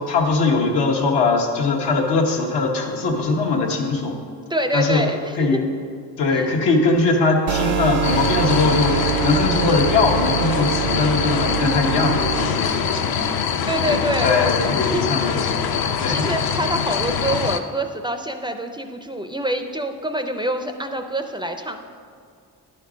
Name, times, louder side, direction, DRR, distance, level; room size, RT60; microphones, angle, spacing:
voice 1, 0.1-4.2 4.7-5.0 5.4-5.7 6.2-13.5 13.9-15.7 16.0-16.2, left 3 dB, 90° left, 0 dB, 1.3 m, -21 dB
voice 2, 4.5-5.6 6.3-6.5 13.7-14.5 14.9-15.0 15.7-21.8, right 1 dB, 10° right, 6 dB, 0.4 m, -26 dB
sound 1, 7.5-12.5, right 8 dB, 80° right, 0.6 m, -25 dB
sound 2, 8.0-17.6, left 7 dB, 65° left, 0.6 m, -24 dB
11.0 x 4.4 x 5.0 m, 2.2 s
cardioid pair, 100°, 39 cm